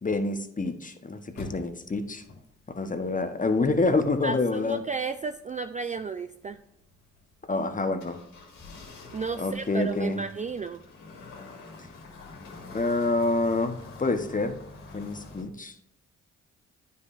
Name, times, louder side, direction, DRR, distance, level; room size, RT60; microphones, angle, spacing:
voice 1, 0.0-2.2 2.7-4.8 7.5-8.2 9.4-10.2 12.7-14.6 14.9-15.7, left 3 dB, 25° left, 8 dB, 1.1 m, -27 dB
sound 1, 1.3-15.4, left 3 dB, 80° left, 1.9 m, -47 dB
voice 2, 4.2-6.6 9.1-10.8, right 4 dB, 25° right, 9 dB, 0.4 m, -33 dB
9.5 x 5.5 x 2.5 m, 0.77 s
hypercardioid pair, 45°, 33 cm